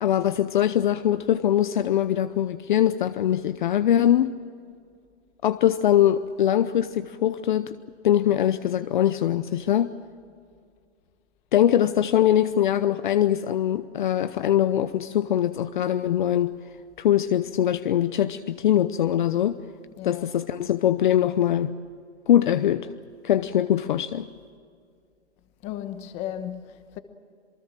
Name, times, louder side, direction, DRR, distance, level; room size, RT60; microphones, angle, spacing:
voice 1, 0.0-4.3 5.4-7.7 8.0-9.9 11.5-16.5 17.0-19.6 20.0-21.7 22.3-22.9 23.2-24.3, left 11 dB, 45° left, 0.7 m, -22 dB
voice 2, 20.0-20.3 25.6-27.0, left 10 dB, 20° left, 1.1 m, -35 dB
27.5 x 19.5 x 7.4 m
hypercardioid pair, 160°, 34 cm